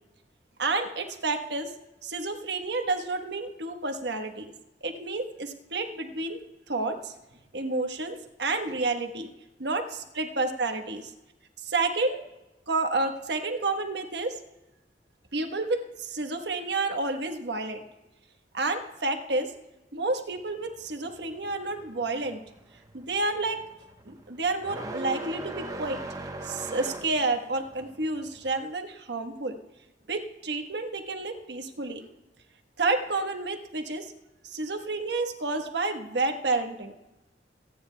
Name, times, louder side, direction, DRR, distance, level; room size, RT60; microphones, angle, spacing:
voice 1, 0.6-1.7 2.0-4.5 4.8-6.4 6.7-7.1 7.5-9.3 9.6-9.8 10.4-11.0 11.6-12.2 12.7-14.4 15.3-17.8 18.5-19.5 19.9-22.4 22.9-23.6 24.0-26.0 26.4-29.5 30.1-32.0 32.8-34.1 34.5-36.9, right 3 dB, 80° right, 5 dB, 1.2 m, -30 dB
sound 1, 20.3-28.5, right 2 dB, 20° right, 0.9 m, -40 dB
25.0 x 9.5 x 2.2 m, 0.97 s
head